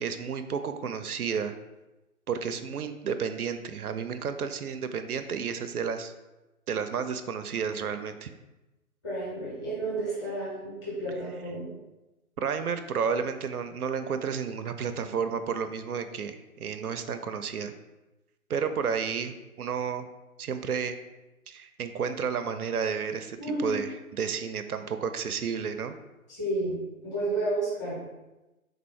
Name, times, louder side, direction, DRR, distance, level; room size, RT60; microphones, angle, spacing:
voice 1, 0.0-1.5 2.3-6.1 6.7-8.3 12.4-17.7 18.5-20.1 20.4-21.0 21.5-26.0, right 6 dB, 75° right, 9 dB, 0.5 m, -31 dB
voice 2, 9.0-11.7 23.4-23.8 26.3-26.8 27.0-28.0, right 2 dB, 15° left, -9 dB, 1.3 m, -31 dB
3.9 x 2.7 x 4.4 m, 1.0 s
figure-of-eight pair, 140°, 45 cm